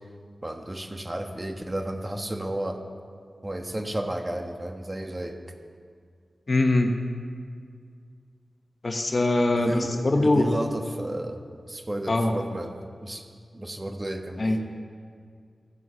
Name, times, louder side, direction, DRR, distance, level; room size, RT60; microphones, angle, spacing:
voice 1, 0.4-2.8 3.4-5.4 9.5-11.4 11.7-12.7 13.0-13.2 13.5-14.4, right 1 dB, 30° right, 4 dB, 1.5 m, -32 dB
voice 2, 6.5-6.9 8.8-10.5 12.1-12.4 14.4-14.6, left 2 dB, 50° left, 4 dB, 1.2 m, -22 dB
16.0 x 7.6 x 5.7 m, 2.1 s
cardioid pair, 50°, 0 cm